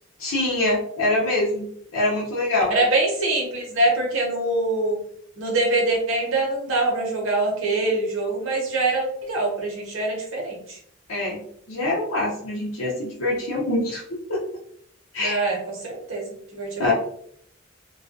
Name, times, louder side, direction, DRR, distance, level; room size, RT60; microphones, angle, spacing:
voice 1, 0.2-1.7 1.9-2.7 11.1-11.4 11.7-14.0 14.3-14.4 15.1-15.5 16.8-16.9, left 2 dB, 85° left, -4 dB, 0.6 m, -24 dB
voice 2, 2.7-5.0 5.4-10.8 15.2-15.6 15.8-16.9, right 2 dB, 70° right, -2 dB, 0.9 m, -24 dB
2.3 x 2.2 x 2.5 m, 0.67 s
head